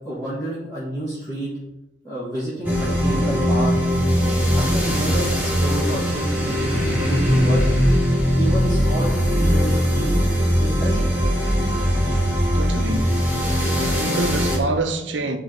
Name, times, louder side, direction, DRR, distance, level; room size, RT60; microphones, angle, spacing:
voice 1, 0.0-1.5 2.0-3.7 4.5-7.6 8.3-10.2 10.6-11.2, right 1 dB, 20° left, 1.5 m, -29 dB
sound 1, 2.6-14.6, equal, 10° right, 1.5 m, -20 dB
voice 2, 12.5-13.2 13.9-15.4, right 2 dB, 85° right, 0.7 m, -26 dB
9.4 x 3.2 x 3.8 m
head